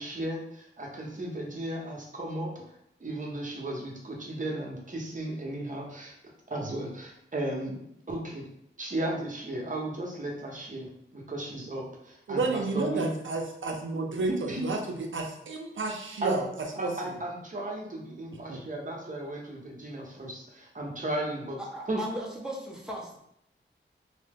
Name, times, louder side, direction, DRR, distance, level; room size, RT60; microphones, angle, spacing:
voice 1, 0.0-2.6 3.0-6.1 6.5-7.8 8.1-8.4 8.8-13.1 14.2-14.6 16.2-16.4 16.7-21.6 21.9-22.0, right 1 dB, 40° right, -1 dB, 0.8 m, -35 dB
voice 2, 12.3-16.5 16.8-16.9 18.5-18.6, right 3 dB, 70° right, 2 dB, 0.6 m, -31 dB
voice 3, 21.6-23.2, right 1 dB, 5° right, -3 dB, 0.8 m, -37 dB
2.8 x 2.1 x 3.4 m, 0.77 s
cardioid pair, 55°, 21 cm